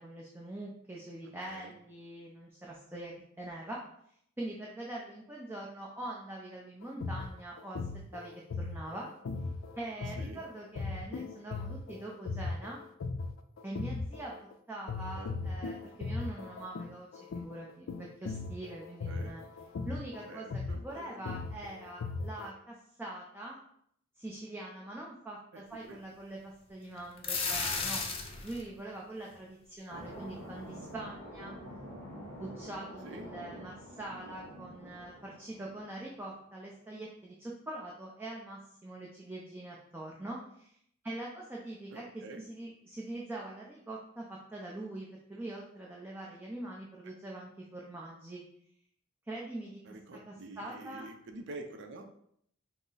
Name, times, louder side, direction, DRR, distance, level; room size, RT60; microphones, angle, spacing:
voice 1, 0.0-3.8 4.4-7.8 8.1-9.1 9.8-12.8 13.6-19.4 19.9-23.6 24.2-28.0 28.4-31.5 32.4-40.8 41.0-48.4 49.3-49.8 50.1-51.1, right 1 dB, 10° right, -3 dB, 0.6 m, -43 dB
sound 1, 6.8-14.5 14.9-22.5, left 3 dB, 80° left, 0.4 m, -38 dB
voice 2, 19.1-19.4 20.3-21.3 25.5-26.0 29.9-30.1 33.0-33.3 41.9-42.5 49.8-52.0, right 2 dB, 65° right, 5 dB, 0.5 m, -47 dB
sound 2, 27.0-28.7, left 4 dB, 30° left, 0.6 m, -33 dB
sound 3, 29.9-36.3, equal, 10° left, 1.1 m, -47 dB
5.9 x 2.0 x 4.0 m, 0.69 s
head